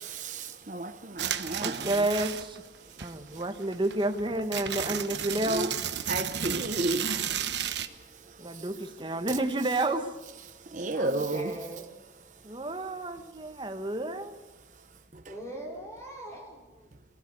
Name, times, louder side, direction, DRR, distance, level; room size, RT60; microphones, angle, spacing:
voice 1, 0.1-1.9 5.5-5.7 6.1-7.3 10.7-11.5 15.3-15.4, right 2 dB, 45° right, 0.8 m, -32 dB
sound 1, 1.2-2.7 3.0-7.9, right 9 dB, 75° right, 1.2 m, -33 dB
voice 2, 1.6-2.6 3.0-5.7 8.4-10.1 12.4-14.4, right 1 dB, 25° right, 1.3 m, -30 dB
voice 3, 10.9-11.9 15.3-16.9, right 1 dB, 15° left, 4.9 m, -41 dB
23.5 x 15.5 x 8.5 m
head